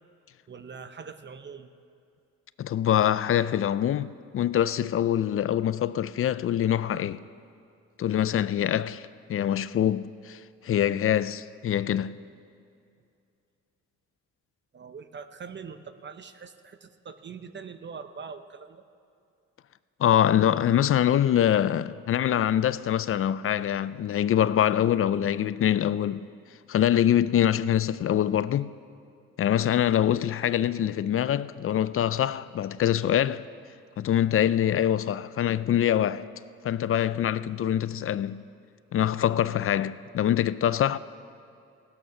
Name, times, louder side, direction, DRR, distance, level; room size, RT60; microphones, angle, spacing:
voice 1, 0.5-1.7 14.7-18.8, right 5 dB, 35° right, 0.8 m, -43 dB
voice 2, 2.6-7.2 8.0-12.2 20.0-26.3 26.7-28.7 29.4-33.5 34.0-36.3 36.6-38.4 38.9-41.0, left 10 dB, 45° left, 0.5 m, -24 dB
16.5 x 12.5 x 5.9 m
cardioid pair, 90°, 30 cm